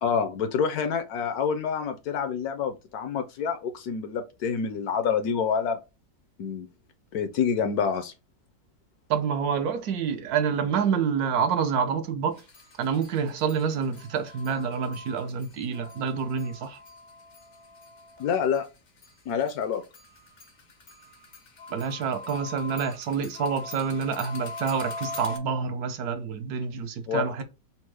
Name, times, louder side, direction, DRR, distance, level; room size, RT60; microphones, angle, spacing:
voice 1, 0.0-5.8 6.4-6.7 7.1-8.1 18.2-18.7 19.3-19.8 27.1-27.4, left 6 dB, 70° left, 1.0 m, -27 dB
voice 2, 9.1-12.4 12.8-16.8 21.7-27.4, right 6 dB, 70° right, 1.0 m, -27 dB
sound 1, 12.4-18.6 19.0-25.4, left 3 dB, 90° left, 0.4 m, -41 dB
4.3 x 2.0 x 4.5 m
omnidirectional pair, 1.9 m